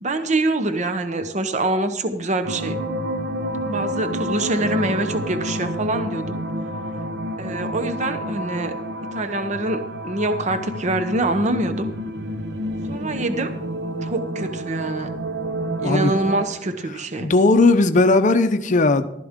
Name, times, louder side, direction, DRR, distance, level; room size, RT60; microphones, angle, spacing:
voice 1, 0.0-2.8 3.7-6.4 7.4-8.7 9.1-11.9 12.9-13.5 14.0-15.1 15.8-17.3, right 2 dB, 40° right, 0.8 m, -25 dB
sound 1, 2.4-16.4, right 1 dB, 70° right, 0.8 m, -29 dB
voice 2, 16.9-19.1, left 3 dB, 45° left, 0.6 m, -17 dB
14.5 x 12.5 x 3.6 m
head